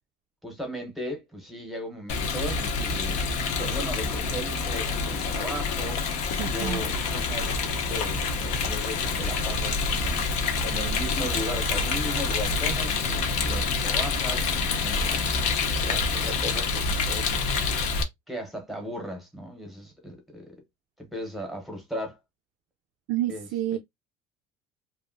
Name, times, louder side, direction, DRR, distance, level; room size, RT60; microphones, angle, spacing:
voice 1, 0.4-3.2 3.5-6.0 6.4-10.2 10.6-15.2 15.8-17.5 18.3-20.6 21.0-22.2 23.3-23.8, equal, ahead, 0.9 m, -37 dB
Rain, 2.1-18.0, left 4 dB, 55° left, 0.7 m, -27 dB
voice 2, 6.4-6.8 23.1-23.8, right 13 dB, 55° right, 0.4 m, -29 dB
2.9 x 2.5 x 2.6 m
cardioid pair, 170°, 14 cm